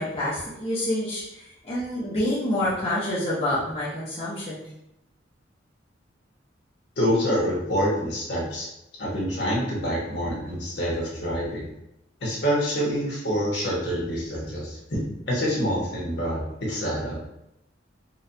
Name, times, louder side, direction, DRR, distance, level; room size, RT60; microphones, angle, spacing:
voice 1, 0.0-4.7, left 1 dB, 30° left, -9 dB, 0.8 m, -27 dB
voice 2, 7.0-8.7 9.0-11.7 12.2-15.0 15.3-16.4 16.7-17.2, equal, 60° left, -4 dB, 1.3 m, -26 dB
4.1 x 2.4 x 2.6 m, 0.83 s
head